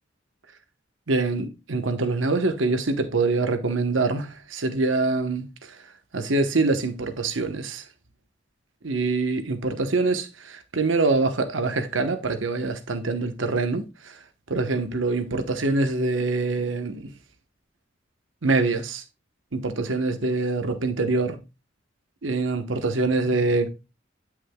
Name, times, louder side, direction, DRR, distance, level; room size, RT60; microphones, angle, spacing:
voice 1, 1.1-5.7 6.1-7.8 8.8-14.1 14.5-17.1 18.4-19.0 19.5-21.4 22.2-23.7, right 3 dB, 80° right, 1.1 m, -25 dB
9.7 x 6.1 x 2.3 m
head